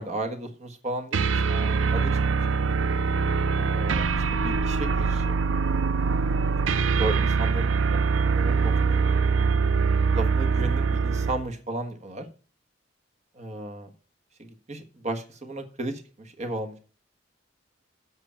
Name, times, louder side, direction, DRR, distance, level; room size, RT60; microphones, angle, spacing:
voice 1, 0.0-2.6 3.5-4.0 4.3-5.4 7.0-8.0 8.3-9.0 10.1-12.2 13.3-13.9 14.4-16.8, right 2 dB, 35° right, 6 dB, 1.4 m, -34 dB
sound 1, 1.1-11.5, right 5 dB, 85° right, 0.5 m, -23 dB
8.1 x 5.7 x 7.3 m, 0.37 s
head